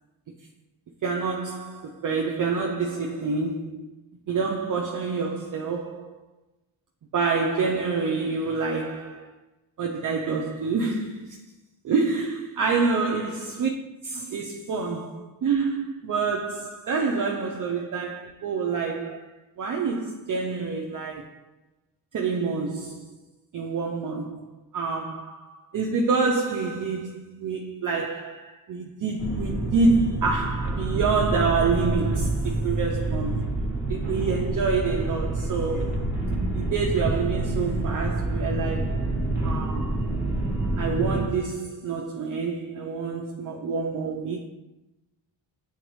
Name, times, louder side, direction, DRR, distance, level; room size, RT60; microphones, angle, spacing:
voice 1, 1.0-3.9 4.3-6.2 7.1-9.3 9.8-11.5 11.8-13.7 14.0-21.4 22.1-23.1 23.5-33.4 33.9-36.0 36.5-39.1 39.4-40.0 40.8-44.5, right 4 dB, 45° right, 0.5 m, -27 dB
sound 1, 29.2-41.3, right 2 dB, 5° right, 1.5 m, -27 dB
9.3 x 3.9 x 3.1 m
wide cardioid pair, 165°, 45 cm